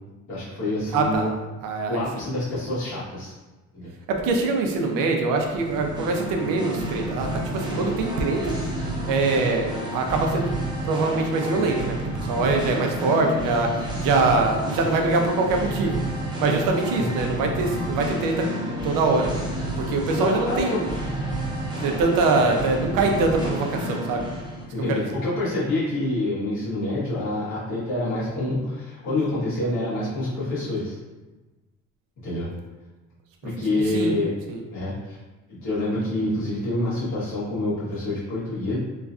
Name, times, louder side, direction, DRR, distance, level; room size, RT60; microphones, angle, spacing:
voice 1, 0.3-1.3 1.9-3.3 3.7-3.9 17.0-17.1 20.2-20.8 24.7-31.0 32.2-32.5 33.4-34.3 34.7-35.2 35.5-38.8, left 1 dB, 60° left, -9 dB, 1.4 m, -27 dB
voice 2, 0.9-1.3 1.6-2.0 4.1-8.6 9.1-10.5 10.8-16.0 16.4-18.5 18.8-19.5 19.8-20.9 21.8-24.3 24.9-25.0 33.9-34.1 34.5-34.6, right 3 dB, 85° right, 3 dB, 0.6 m, -23 dB
Singing, 5.5-24.6, right 1 dB, 15° right, 0.4 m, -30 dB
3.1 x 2.4 x 2.4 m, 1.2 s
cardioid pair, 170°, 31 cm